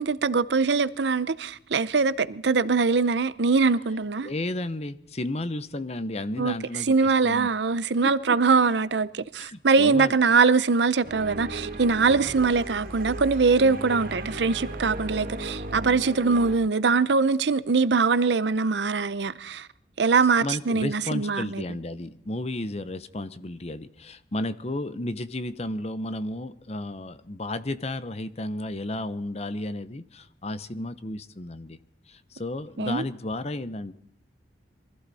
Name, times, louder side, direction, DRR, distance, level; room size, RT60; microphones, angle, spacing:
voice 1, 0.0-4.3 6.4-19.7 20.0-21.6 32.8-33.0, right 4 dB, 85° right, 0.7 m, -22 dB
voice 2, 4.2-7.5 8.0-8.4 9.4-10.2 20.4-31.8 32.1-33.9, left 1 dB, 35° left, 0.9 m, -33 dB
sound 1, 11.0-16.6, right 1 dB, 55° right, 1.5 m, -36 dB
23.5 x 15.0 x 4.2 m
head